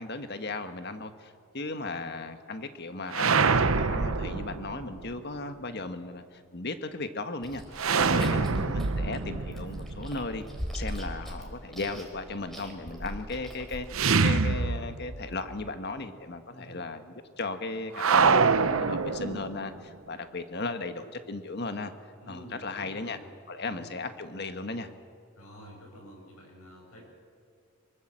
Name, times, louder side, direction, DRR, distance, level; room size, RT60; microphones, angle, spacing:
voice 1, 0.0-7.6 8.1-10.4 10.7-21.9 22.3-23.2 23.5-24.9, left 3 dB, 50° left, 8 dB, 1.5 m, -36 dB
sound 1, 3.1-5.1 7.8-10.8 13.9-15.3 15.6-15.7 17.9-19.7, right 4 dB, 70° right, 0.9 m, -25 dB
Chewing mastication, 7.4-14.4, equal, ahead, 3.9 m, -41 dB
voice 2, 16.5-16.8 22.2-23.3 23.7-23.9 25.4-27.0, equal, 90° left, 1 dB, 7.7 m, -48 dB
24.5 x 24.0 x 7.6 m, 2.2 s
head